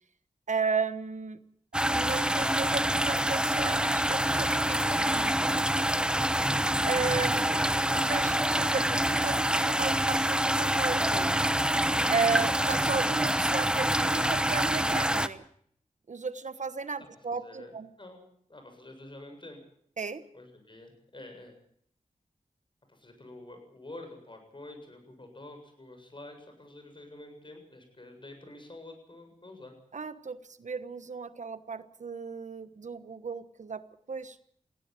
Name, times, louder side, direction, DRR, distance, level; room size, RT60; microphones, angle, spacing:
voice 1, 0.5-1.4 1.9-5.8 6.8-11.4 12.1-15.4 16.1-17.9 20.0-20.3 29.9-33.8 34.1-34.4, right 5 dB, 65° right, 13 dB, 1.2 m, -34 dB
sound 1, 1.7-15.3, right 1 dB, 5° right, 1.0 m, -26 dB
voice 2, 17.0-18.2 18.5-19.6 20.3-21.6 22.9-29.7, left 2 dB, 40° left, 5 dB, 7.5 m, -48 dB
20.5 x 16.5 x 9.0 m, 0.66 s
wide cardioid pair, 80°, 13 cm